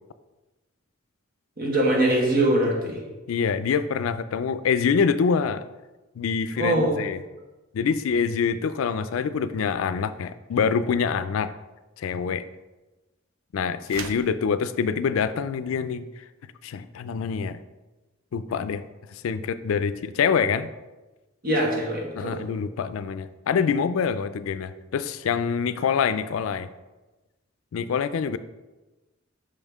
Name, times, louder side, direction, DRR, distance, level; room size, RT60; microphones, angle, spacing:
voice 1, 1.6-3.0 6.6-7.0 21.4-22.4, right 1 dB, 50° right, -1 dB, 1.4 m, -23 dB
voice 2, 3.3-5.6 6.2-7.2 7.7-11.5 12.0-12.4 13.5-16.1 16.6-17.6 18.3-18.8 19.1-20.7 22.2-26.7 27.7-28.4, left 6 dB, 85° left, 13 dB, 0.4 m, -25 dB
sound 1, 13.8-14.4, right 6 dB, 80° right, 0.5 m, -37 dB
5.6 x 5.4 x 3.5 m, 1.1 s
head